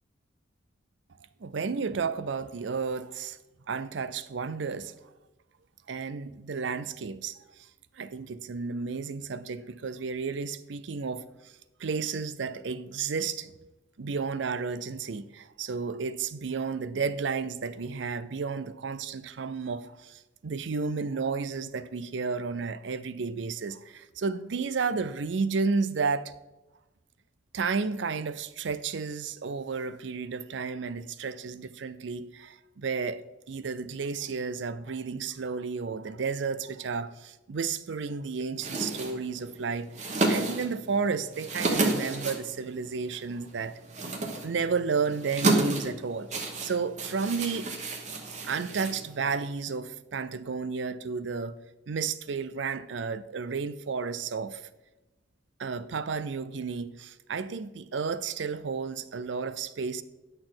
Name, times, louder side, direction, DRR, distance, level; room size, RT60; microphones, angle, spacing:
voice 1, 1.4-3.4 3.7-4.9 5.9-7.4 8.0-11.2 11.8-13.5 14.0-26.3 27.5-43.7 44.4-47.7 48.4-51.6 51.9-54.6 55.6-60.0, right 5 dB, 65° right, 0.5 m, -32 dB
sound 1, 38.6-49.5, right 2 dB, 35° right, 1.2 m, -32 dB
10.5 x 6.6 x 3.9 m
head